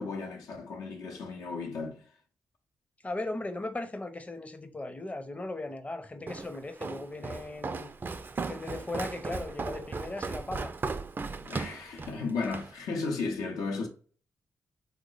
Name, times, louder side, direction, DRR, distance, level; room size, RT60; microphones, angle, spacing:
voice 1, 0.0-2.0 11.4-13.9, left 4 dB, 90° left, 0.7 m, -34 dB
voice 2, 3.0-7.9 8.4-10.7, left 2 dB, 25° left, 0.6 m, -37 dB
Walk footsteps, 6.3-12.7, right 4 dB, 35° right, 0.3 m, -37 dB
3.1 x 2.1 x 3.8 m
cardioid pair, 60°, 6 cm